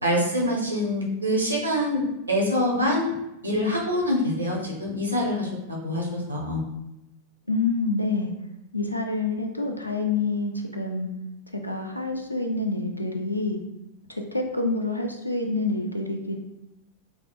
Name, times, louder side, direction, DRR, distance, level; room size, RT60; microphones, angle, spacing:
voice 1, 0.0-3.1 3.4-6.6, left 1 dB, 85° right, -2 dB, 0.7 m, -25 dB
voice 2, 7.5-8.3 8.7-11.1 11.5-13.6 14.3-16.4, left 3 dB, 85° left, 3 dB, 0.4 m, -27 dB
3.5 x 2.0 x 2.5 m, 0.88 s
figure-of-eight pair, 90°, 0 cm